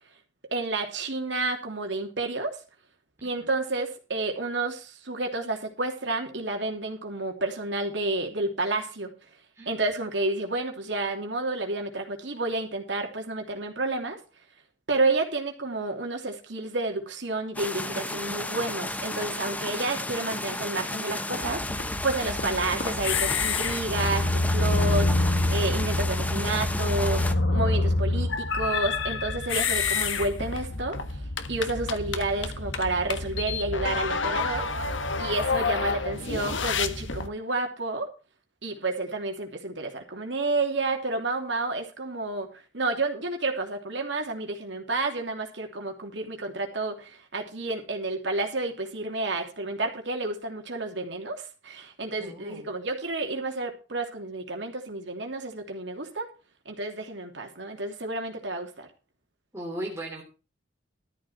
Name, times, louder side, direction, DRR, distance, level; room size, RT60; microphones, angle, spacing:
voice 1, 0.5-2.6 3.2-9.1 9.7-14.2 14.9-31.0 31.5-34.7 35.2-38.1 38.6-42.5 42.7-56.3 56.6-58.9, right 2 dB, 70° right, 3 dB, 3.0 m, -30 dB
sound 1, 17.5-27.3, left 1 dB, 10° left, 0.9 m, -33 dB
sound 2, 21.4-37.3, left 3 dB, 85° left, 1.3 m, -27 dB
voice 2, 52.2-52.7 59.5-60.2, right 1 dB, 15° right, -2 dB, 3.0 m, -37 dB
13.5 x 9.1 x 4.3 m, 0.33 s
head